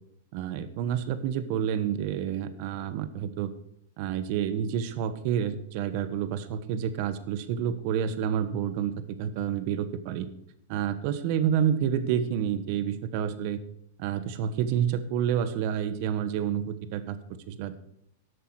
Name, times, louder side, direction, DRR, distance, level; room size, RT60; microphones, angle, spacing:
voice 1, 0.3-3.5 4.0-8.9 9.2-10.3 10.7-13.6 14.0-17.2 17.5-17.8, right 9 dB, 40° right, 12 dB, 1.1 m, -29 dB
13.5 x 8.4 x 4.8 m, 0.75 s
supercardioid pair, 165°, 0 cm